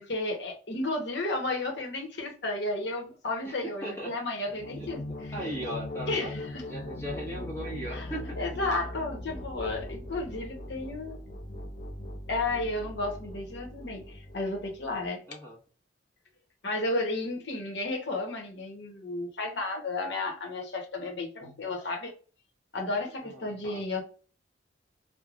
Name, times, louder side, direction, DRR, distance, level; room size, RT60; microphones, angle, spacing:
voice 1, 0.0-5.0 6.1-6.4 7.9-8.1 8.4-11.2 12.3-15.2 16.6-22.1 22.7-24.0, left 2 dB, 65° left, 1.0 m, -32 dB
voice 2, 3.4-4.2 4.8-4.9 5.3-8.4 15.3-15.6 23.2-23.8, right 1 dB, 15° left, 1.3 m, -38 dB
sound 1, 4.4-15.1, left 1 dB, 40° left, 0.4 m, -40 dB
3.3 x 2.2 x 2.4 m
head